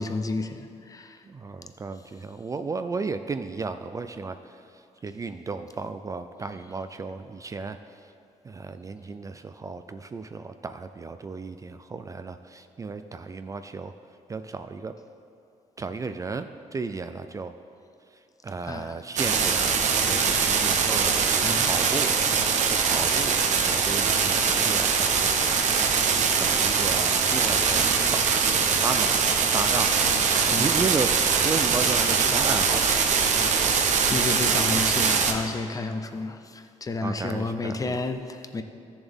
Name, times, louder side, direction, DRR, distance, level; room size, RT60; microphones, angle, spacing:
voice 1, 0.0-1.2 18.6-19.0 19.4-19.5 21.4-21.8 30.0-30.9 34.1-38.6, left 3 dB, 30° left, 8 dB, 0.6 m, -32 dB
voice 2, 1.3-4.4 5.0-7.8 8.4-13.9 14.3-14.9 15.8-17.5 18.4-22.2 22.7-25.2 26.4-28.4 28.7-29.9 30.6-33.0 37.0-38.0, right 4 dB, 25° right, 9 dB, 0.3 m, -34 dB
sound 1, 19.2-35.3, right 6 dB, 70° right, 0.9 m, -22 dB
14.0 x 7.0 x 3.6 m, 2.4 s
cardioid pair, 100°, 13 cm